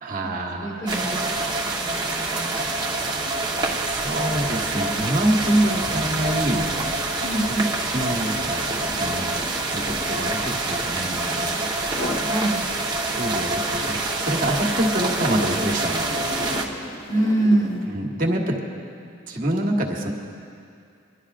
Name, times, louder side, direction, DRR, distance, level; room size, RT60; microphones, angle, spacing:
voice 1, 0.0-0.9 3.9-6.7 7.8-11.6 13.0-16.1 17.9-18.6 19.3-20.1, right 1 dB, 50° right, 1 dB, 1.4 m, -26 dB
voice 2, 0.6-3.3 5.4-5.7 7.2-7.7 12.3-12.6 17.1-17.9, right 1 dB, 20° left, 1 dB, 1.6 m, -25 dB
sound 1, 0.9-16.6, right 2 dB, 25° right, 1.0 m, -26 dB
sound 2, 2.4-2.6 2.9-11.3 11.8-12.4 12.8-18.0, left 1 dB, 65° left, 1.1 m, -38 dB
27.0 x 11.5 x 2.5 m, 2.4 s
head